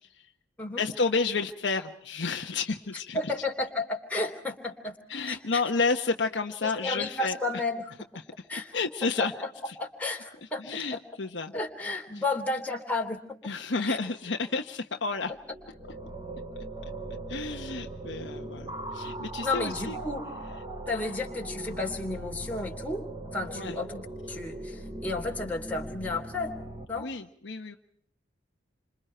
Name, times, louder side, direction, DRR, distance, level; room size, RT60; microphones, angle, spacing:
voice 1, 0.8-3.3 5.1-7.4 8.2-8.3 8.7-9.3 9.7-9.8 10.6-11.5 13.4-15.3 16.5-16.6 17.3-20.0 23.5-23.8 26.9-27.8, left 4 dB, 65° left, 4 dB, 1.1 m, -31 dB
voice 2, 3.1-5.0 5.3-5.6 6.6-7.9 8.5-8.7 9.2-9.5 9.8-11.0 11.5-13.4 13.9-14.0 18.3-18.4 19.4-20.3 20.9-23.0 23.3-26.5 26.9-27.1, left 2 dB, 10° left, 1 dB, 3.0 m, -32 dB
sound 1, 15.3-26.8, right 1 dB, 25° right, 5.2 m, -39 dB
28.5 x 26.0 x 4.5 m, 0.65 s
head